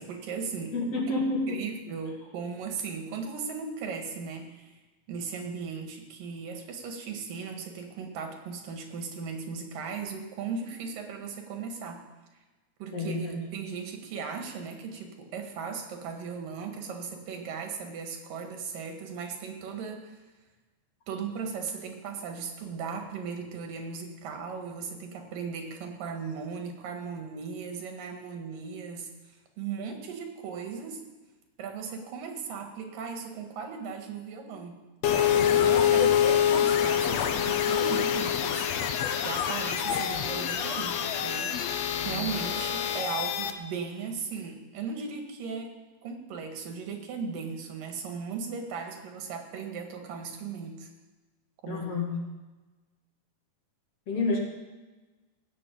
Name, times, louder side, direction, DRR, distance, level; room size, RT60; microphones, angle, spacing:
voice 1, 0.0-0.7 1.5-4.8 5.1-12.0 12.8-13.2 13.5-20.2 21.1-31.0 31.6-34.8 35.0-38.7 39.2-41.5 42.0-50.9 51.6-51.9, right 5 dB, 90° right, 4 dB, 3.4 m, -37 dB
voice 2, 0.7-1.6 12.9-13.4 51.7-52.2 54.1-54.4, left 2 dB, 50° left, -1 dB, 3.3 m, -29 dB
sound 1, 35.0-43.5, left 9 dB, 70° left, 1.8 m, -26 dB
16.5 x 6.6 x 8.5 m, 1.2 s
omnidirectional pair, 3.8 m